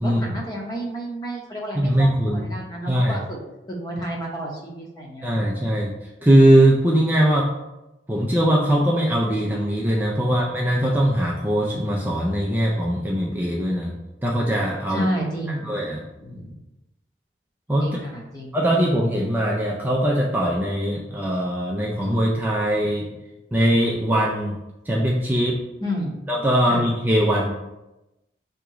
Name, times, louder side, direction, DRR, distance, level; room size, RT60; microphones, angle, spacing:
voice 1, 0.0-3.4 3.7-5.5 14.9-15.7 16.1-16.6 17.8-18.6 25.8-26.2 26.7-26.8, right 1 dB, 20° left, -2 dB, 0.9 m, -31 dB
voice 2, 1.8-2.5 2.9-3.2 5.2-5.9 6.2-7.5 8.1-13.9 14.2-15.1 15.6-16.0 17.7-17.9 18.5-23.0 23.5-24.6 24.9-25.6 26.3-27.5, right 1 dB, 10° right, -3 dB, 0.4 m, -20 dB
3.6 x 2.9 x 4.7 m, 0.98 s
head